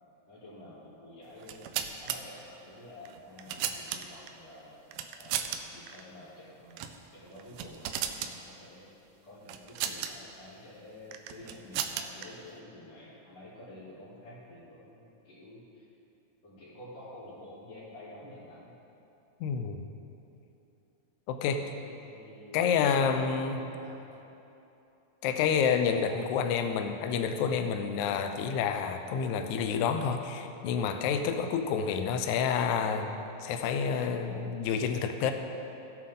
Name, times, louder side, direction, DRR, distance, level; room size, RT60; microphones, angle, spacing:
voice 1, 0.3-4.8 5.2-8.9 9.2-15.8 16.4-18.8 21.3-21.4 21.7-24.0 25.8-26.2, left 1 dB, 30° left, -15 dB, 3.4 m, -50 dB
sound 1, 1.4-2.2 3.1-4.3 4.9-5.6 5.9-6.0 6.7-7.0 7.4-8.3 9.5-10.1 11.1-12.3, right 10 dB, 80° right, 1.9 m, -35 dB
voice 2, 19.4-19.8 21.3-21.6 22.5-23.7 25.2-33.1 33.4-35.3, left 6 dB, 80° left, 7 dB, 1.8 m, -29 dB
16.5 x 8.5 x 3.8 m, 2.9 s
omnidirectional pair, 4.1 m